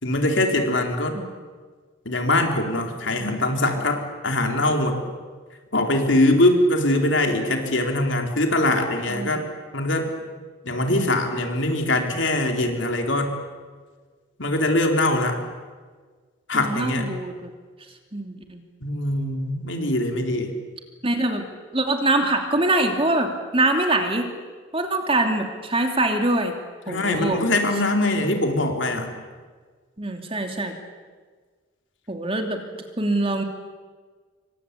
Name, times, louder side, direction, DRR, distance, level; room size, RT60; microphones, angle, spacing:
voice 1, 0.0-1.2 2.0-5.0 5.7-9.4 9.7-10.1 10.6-13.3 14.4-15.4 16.5-17.1 18.8-20.5 26.9-29.1, left 1 dB, 65° left, 3 dB, 4.2 m, -22 dB
voice 2, 9.1-9.4 10.9-11.1 16.5-17.5 18.1-18.6 21.0-21.4 21.7-24.3 24.7-26.6 26.9-27.4 30.0-30.8 32.1-32.6 33.0-33.4, right 2 dB, 25° right, 4 dB, 2.9 m, -24 dB
28.5 x 24.5 x 8.5 m, 1.5 s
head